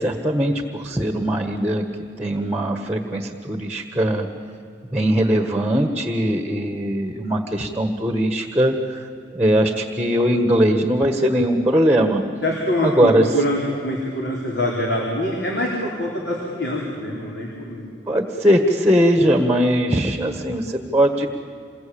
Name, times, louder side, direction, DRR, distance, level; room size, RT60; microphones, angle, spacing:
voice 1, 0.0-1.9 2.2-4.3 4.8-12.2 12.8-13.4 18.1-21.3, equal, 10° right, 6 dB, 1.4 m, -20 dB
voice 2, 12.4-17.8, left 1 dB, 70° left, -2 dB, 4.1 m, -24 dB
27.5 x 21.5 x 8.7 m, 2.3 s
head